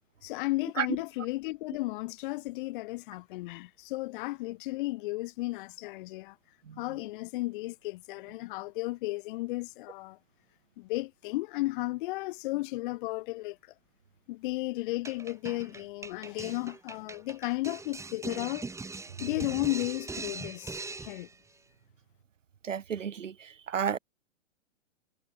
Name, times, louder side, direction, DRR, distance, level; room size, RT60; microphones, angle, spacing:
voice 1, 0.2-6.4 6.8-10.2 10.8-13.6 14.3-18.7 19.2-21.3, left 20 dB, 45° left, 1.8 m, -34 dB
sound 1, 15.0-21.4, right 3 dB, 10° right, 6.8 m, -41 dB
voice 2, 22.6-24.0, right 7 dB, 85° right, 2.9 m, -32 dB
hypercardioid pair, 135°, 37 cm